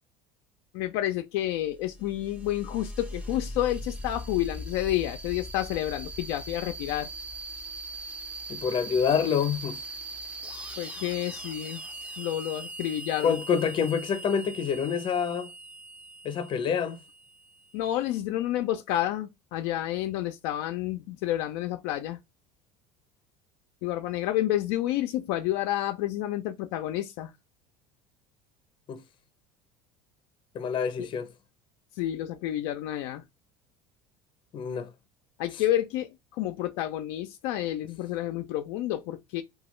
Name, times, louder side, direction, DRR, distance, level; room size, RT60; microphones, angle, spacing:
voice 1, 0.7-7.1 10.8-11.8 12.2-13.4 17.7-22.2 23.8-27.3 31.0-31.1 32.0-33.2 35.4-39.4, left 13 dB, 75° left, 0.4 m, -30 dB
sound 1, 1.6-18.0, right 1 dB, 10° right, 0.5 m, -40 dB
voice 2, 8.5-9.8 13.2-15.5 16.2-17.0 28.9-29.0 30.5-31.3 34.5-34.9, left 7 dB, 40° left, 0.7 m, -27 dB
2.9 x 2.3 x 3.1 m
supercardioid pair, 105°, 13 cm